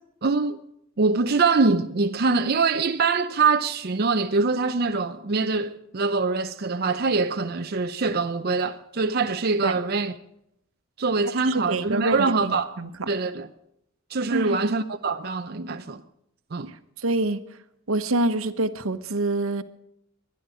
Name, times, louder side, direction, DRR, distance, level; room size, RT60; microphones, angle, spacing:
voice 1, 0.2-0.6 1.0-10.1 11.0-12.7 13.1-13.5 14.1-16.0 16.5-16.7, right 4 dB, 50° right, 0.6 m, -24 dB
voice 2, 11.4-12.9 14.3-14.6 17.0-17.4 17.9-19.6, right 2 dB, 80° right, 1.1 m, -26 dB
23.5 x 10.5 x 5.0 m
head